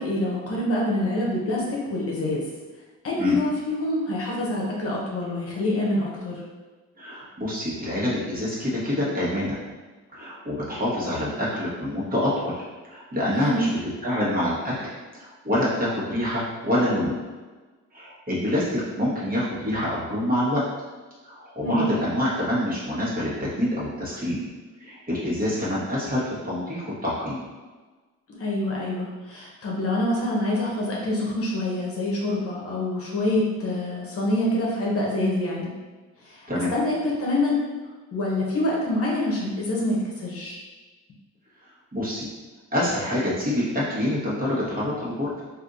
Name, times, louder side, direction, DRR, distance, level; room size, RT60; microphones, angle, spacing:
voice 1, 0.0-2.4 3.0-6.4 13.3-13.7 21.6-21.9 28.4-35.7 36.2-37.6 38.1-40.6, left 1 dB, 50° left, -4 dB, 0.9 m, -26 dB
voice 2, 7.0-9.6 10.1-12.6 12.9-13.7 14.0-17.2 17.9-20.6 21.2-24.4 24.8-27.5 36.5-36.7 41.9-42.3 42.7-45.4, left 1 dB, 30° right, -8 dB, 1.3 m, -26 dB
3.4 x 2.6 x 2.6 m, 1.3 s
cardioid pair, 90°, 30 cm